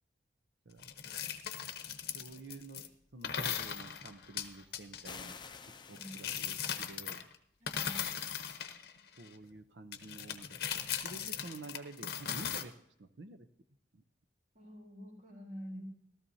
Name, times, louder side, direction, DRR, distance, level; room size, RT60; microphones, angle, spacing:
sound 1, 0.8-2.9 3.2-5.2 5.9-7.3 7.7-9.3 9.9-12.6, left 8 dB, 55° left, 0.9 m, -38 dB
voice 1, 2.1-2.8 3.1-5.4 5.9-7.2 9.2-12.7 13.0-13.5 13.9-14.0, right 2 dB, 75° right, 10 dB, 0.7 m, -49 dB
sound 2, 5.0-7.1, left 5 dB, 25° left, 0.6 m, -50 dB
voice 2, 7.6-8.1 14.5-15.9, equal, 45° right, -1 dB, 3.4 m, -47 dB
15.5 x 13.5 x 2.8 m, 0.72 s
head